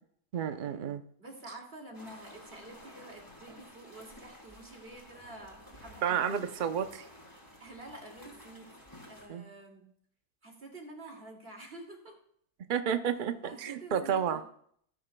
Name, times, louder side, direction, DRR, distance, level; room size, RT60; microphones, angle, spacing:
voice 1, 0.3-1.0 6.0-7.0 9.3-9.4 12.7-14.4, right 8 dB, 90° right, 9 dB, 0.4 m, -31 dB
voice 2, 1.2-6.4 7.6-8.7 9.1-9.9 10.4-12.1 13.4-14.4, right 2 dB, 35° right, 1 dB, 2.5 m, -48 dB
sound 1, 1.9-9.3, equal, 10° left, 3.0 m, -53 dB
18.0 x 9.6 x 2.2 m, 0.64 s
omnidirectional pair, 1.8 m